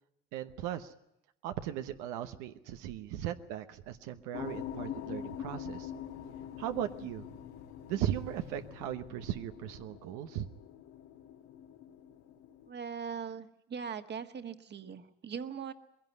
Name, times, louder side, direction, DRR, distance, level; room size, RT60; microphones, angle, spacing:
voice 1, 0.3-0.9 1.4-5.9 6.6-7.3 7.9-10.5, right 11 dB, 90° right, 8 dB, 1.1 m, -37 dB
sound 1, 4.3-12.7, left 9 dB, 85° left, 2.6 m, -45 dB
voice 2, 12.7-15.7, right 7 dB, 35° right, 8 dB, 1.6 m, -40 dB
21.0 x 16.5 x 9.6 m, 0.85 s
cardioid pair, 100°, 29 cm